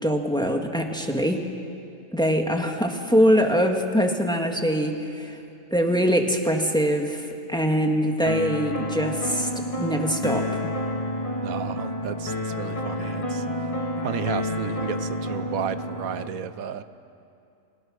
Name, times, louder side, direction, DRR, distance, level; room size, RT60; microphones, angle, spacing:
voice 1, 0.0-1.4 2.1-5.4 5.7-9.5 9.8-10.5, equal, 5° left, 3 dB, 1.7 m, -23 dB
sound 1, 8.3-16.3, left 1 dB, 25° left, 1.7 m, -29 dB
voice 2, 11.4-13.4 14.0-16.8, right 8 dB, 90° right, 12 dB, 1.3 m, -32 dB
30.0 x 22.5 x 6.5 m, 2.6 s
omnidirectional pair, 1.4 m